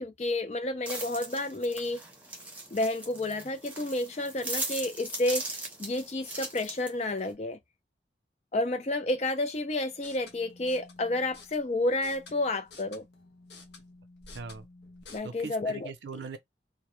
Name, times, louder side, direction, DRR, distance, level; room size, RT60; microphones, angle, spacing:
voice 1, 0.0-2.0 2.7-5.4 5.8-7.6 8.5-13.1 15.1-15.9, left 2 dB, 40° left, 0.4 m, -30 dB
sound 1, 0.8-7.3, right 2 dB, 10° right, 0.6 m, -39 dB
sound 2, 9.9-15.2, left 3 dB, 70° left, 0.7 m, -52 dB
voice 2, 14.3-14.7 15.2-16.4, right 4 dB, 80° right, 0.5 m, -40 dB
2.1 x 2.1 x 3.0 m
head